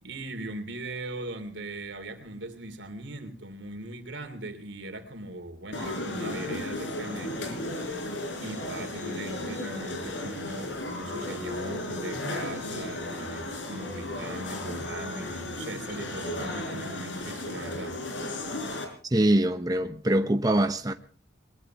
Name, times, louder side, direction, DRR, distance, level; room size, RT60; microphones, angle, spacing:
voice 1, 0.0-18.0, right 1 dB, 90° right, 3.0 m, -40 dB
sound 1, 5.7-18.9, left 1 dB, 85° left, 4.8 m, -35 dB
voice 2, 19.1-20.9, right 1 dB, 20° right, 0.9 m, -23 dB
21.5 x 21.5 x 3.0 m
head